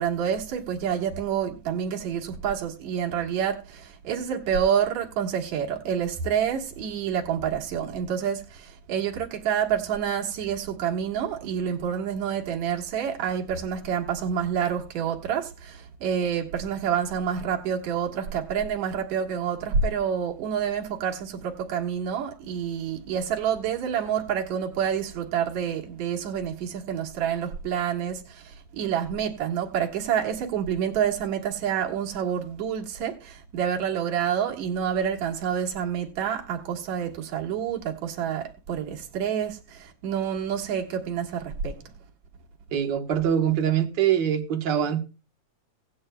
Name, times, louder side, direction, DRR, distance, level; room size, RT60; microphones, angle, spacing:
voice 1, 0.0-41.8, right 8 dB, 70° right, 2.8 m, -28 dB
voice 2, 42.7-45.0, right 9 dB, 55° right, 1.3 m, -23 dB
17.5 x 9.6 x 2.2 m
omnidirectional pair, 3.4 m